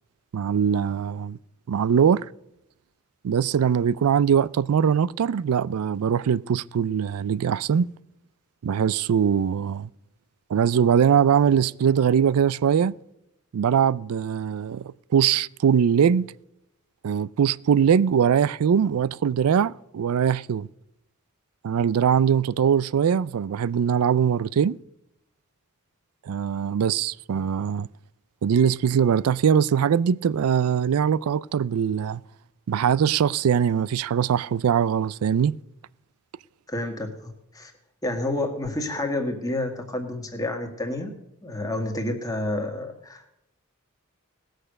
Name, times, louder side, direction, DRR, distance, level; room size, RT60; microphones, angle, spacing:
voice 1, 0.3-1.4 1.7-2.3 3.2-7.9 8.6-9.9 10.5-13.0 13.5-16.3 17.0-20.7 21.6-24.8 26.3-27.9 28.4-32.2 32.7-35.6, right 7 dB, 85° right, 0.4 m, -22 dB
voice 2, 36.7-37.7 38.0-41.1 41.4-43.3, left 2 dB, 15° left, 1.8 m, -29 dB
18.0 x 6.6 x 6.5 m
head